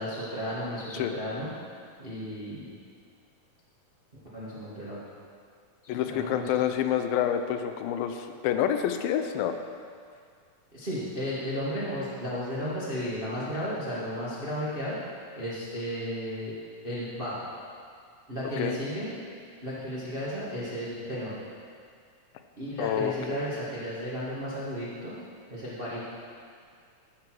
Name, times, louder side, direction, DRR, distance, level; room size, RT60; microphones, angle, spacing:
voice 1, 0.0-1.5 2.0-2.7 4.3-5.0 6.0-6.5 10.7-15.0 15.3-16.5 16.8-17.4 18.3-19.1 19.6-21.3 22.6-25.2 25.5-26.0, equal, 55° right, -9 dB, 0.6 m, -34 dB
voice 2, 5.9-9.5 18.6-18.8 22.8-23.4, left 9 dB, 90° left, 8 dB, 2.5 m, -28 dB
13.5 x 6.0 x 4.8 m, 2.2 s
omnidirectional pair, 4.1 m